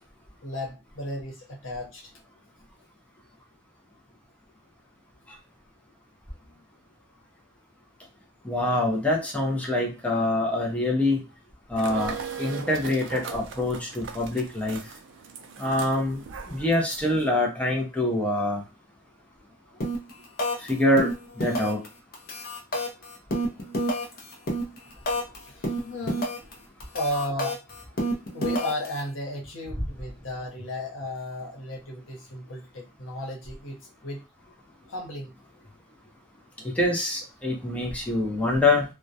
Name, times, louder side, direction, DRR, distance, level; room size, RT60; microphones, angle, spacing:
voice 1, 0.4-2.1 6.5-6.6 20.0-20.2 22.4-22.6 24.6-24.7 25.4-26.3 26.9-27.9 28.3-33.8 34.0-34.2 34.9-35.3, left 1 dB, 90° left, 0.9 m, -34 dB
voice 2, 8.4-11.2 11.7-14.8 15.6-16.2 16.5-18.6 20.7-21.1 21.4-21.8 36.8-38.8, left 2 dB, 5° left, 0.6 m, -25 dB
sound 1, 11.8-17.3, right 6 dB, 70° right, 0.4 m, -39 dB
sound 2, 19.8-20.1 20.4-20.7 21.0-21.9 22.1-25.4 25.6-26.5 26.8-29.0, equal, 50° left, 0.6 m, -28 dB
2.2 x 2.2 x 2.6 m
head